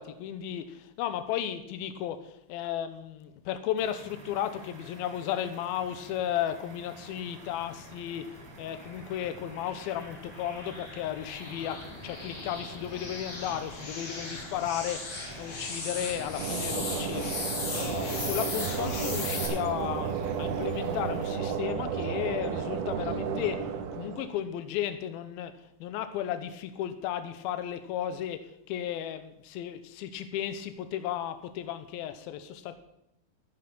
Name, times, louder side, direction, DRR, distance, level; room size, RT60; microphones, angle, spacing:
voice 1, 0.0-8.3 8.6-15.1 15.4-23.6 23.9-25.5 25.8-28.4 28.7-32.8, left 10 dB, 85° left, 10 dB, 2.6 m, -34 dB
sound 1, 3.8-21.4, right 3 dB, 40° right, 1.3 m, -50 dB
sound 2, 7.9-19.5, left 3 dB, 65° left, 5.0 m, -38 dB
sound 3, 16.4-24.4, right 7 dB, 90° right, 2.9 m, -32 dB
15.0 x 7.7 x 5.9 m, 0.81 s
omnidirectional pair, 4.2 m